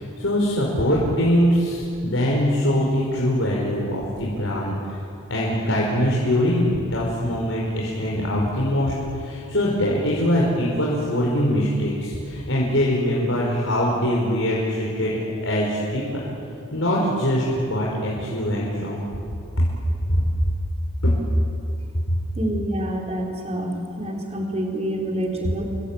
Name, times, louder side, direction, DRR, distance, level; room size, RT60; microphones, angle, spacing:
voice 1, 0.0-5.0 5.3-15.1 15.4-16.3 16.7-19.0 21.0-21.2, equal, 75° left, -4 dB, 5.2 m, -22 dB
voice 2, 22.4-25.6, right 1 dB, 30° right, 0 dB, 4.4 m, -27 dB
29.0 x 23.0 x 9.0 m, 2.6 s
head